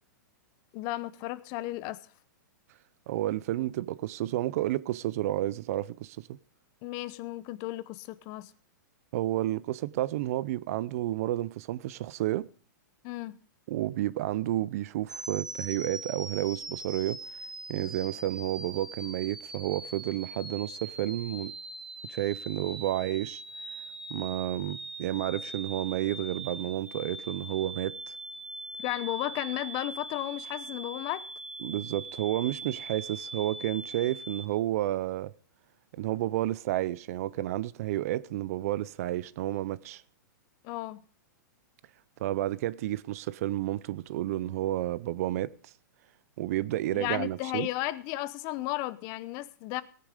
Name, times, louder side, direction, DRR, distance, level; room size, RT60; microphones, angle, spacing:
voice 1, 0.7-2.0 6.8-8.5 13.0-13.4 28.8-31.3 40.6-41.0 46.9-49.8, left 17 dB, 35° left, 0.8 m, -34 dB
voice 2, 3.1-6.4 9.1-12.5 13.7-17.2 17.7-21.5 22.1-23.4 24.1-27.9 31.6-35.3 35.9-40.0 42.2-45.5 46.4-47.7, right 14 dB, 50° right, 0.6 m, -31 dB
sound 1, 15.1-34.5, right 2 dB, 5° right, 1.0 m, -42 dB
17.5 x 10.0 x 5.0 m
hypercardioid pair, 150°, 10 cm